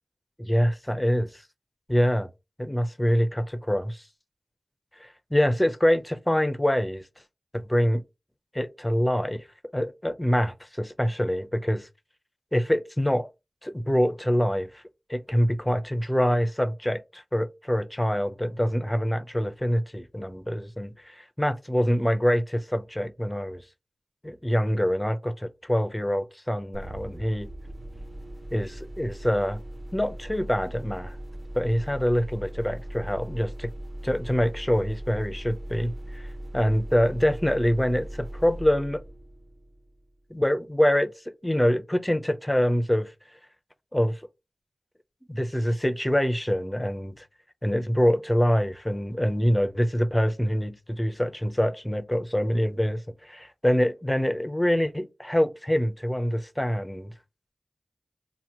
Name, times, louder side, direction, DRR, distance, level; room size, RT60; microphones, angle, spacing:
voice 1, 0.4-1.4 1.9-2.3 2.6-4.0 5.0-7.0 7.5-8.0 8.5-9.5 9.7-11.9 12.5-13.3 13.6-14.8 15.1-23.6 24.2-27.5 28.5-29.6 29.9-31.2 31.5-33.7 34.0-36.3 36.5-39.0 40.3-43.1 43.9-44.2 45.3-47.3 47.6-57.1, equal, 10° left, 0.4 m, -25 dB
sound 1, 26.7-40.2, right 1 dB, 40° right, 0.8 m, -39 dB
2.8 x 2.2 x 3.4 m
cardioid pair, 45°, 0 cm